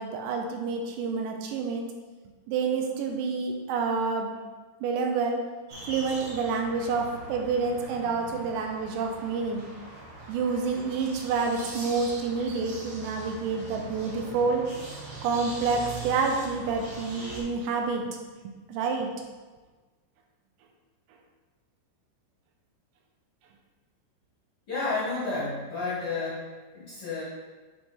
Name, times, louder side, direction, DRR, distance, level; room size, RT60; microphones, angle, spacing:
voice 1, 0.0-1.9 2.5-4.4 4.8-5.4 5.9-9.6 10.3-14.7 15.2-18.2 18.7-19.1, right 4 dB, 80° right, 2 dB, 2.8 m, -28 dB
sound 1, 5.7-17.4, right 2 dB, 65° right, 2.0 m, -42 dB
voice 2, 24.7-27.2, left 3 dB, 70° left, -9 dB, 1.3 m, -31 dB
9.6 x 3.4 x 4.4 m, 1.3 s
omnidirectional pair, 5.3 m